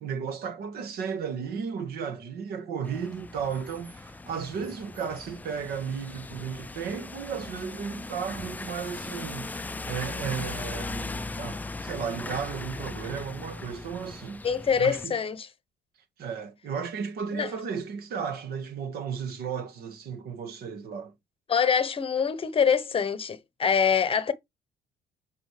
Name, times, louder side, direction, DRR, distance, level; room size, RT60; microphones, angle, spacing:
voice 1, 0.0-9.5 9.9-14.4 14.8-15.2 16.2-21.1, right 6 dB, 65° right, 1.5 m, -34 dB
sound 1, 2.8-15.0, left 3 dB, 10° left, 0.3 m, -38 dB
voice 2, 14.4-15.5 17.3-17.5 21.5-24.3, left 7 dB, 35° left, 0.9 m, -25 dB
7.7 x 5.0 x 3.2 m
cardioid pair, 110°, 17 cm